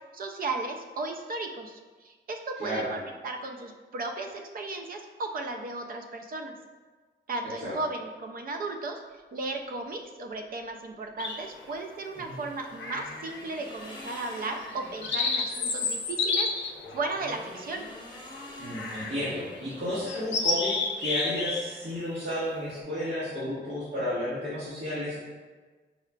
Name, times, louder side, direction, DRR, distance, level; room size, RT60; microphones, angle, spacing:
voice 1, 0.1-6.5 7.3-9.0 9.3-17.9, right 3 dB, 50° right, 4 dB, 0.4 m, -35 dB
sound 1, 11.2-11.7 12.8-13.5 13.9-14.0 14.6-18.0 18.7-19.2 19.6-19.7 20.1-21.6 21.9-22.2, left 4 dB, 80° left, 0.5 m, -30 dB
sound 2, 12.1-15.3 16.7-20.1, left 1 dB, 25° left, 0.8 m, -47 dB
voice 2, 18.6-25.2, equal, 70° right, -13 dB, 1.3 m, -32 dB
5.5 x 2.3 x 2.2 m, 1.3 s
wide cardioid pair, 170°, 19 cm